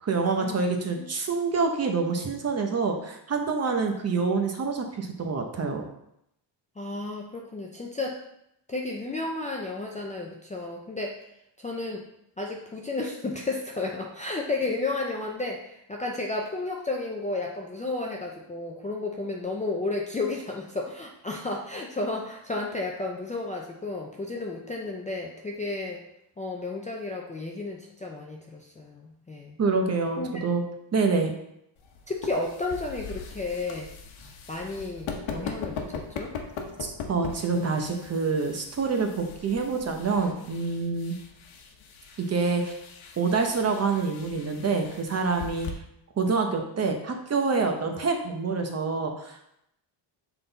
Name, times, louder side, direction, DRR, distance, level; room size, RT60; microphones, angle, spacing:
voice 1, 0.0-5.8 29.6-30.6 30.9-31.3 36.8-41.1 42.2-42.7 43.2-45.7 46.2-49.4, right 4 dB, 30° right, 3 dB, 0.8 m, -26 dB
voice 2, 6.8-8.2 8.7-11.3 11.6-12.0 12.4-26.0 26.4-29.6 30.2-30.5 32.1-33.9 34.5-36.3, left 2 dB, 15° left, -1 dB, 0.4 m, -32 dB
sound 1, 31.8-45.7, left 5 dB, 70° left, 1.1 m, -40 dB
7.6 x 3.9 x 4.0 m, 0.78 s
cardioid pair, 165°, 49 cm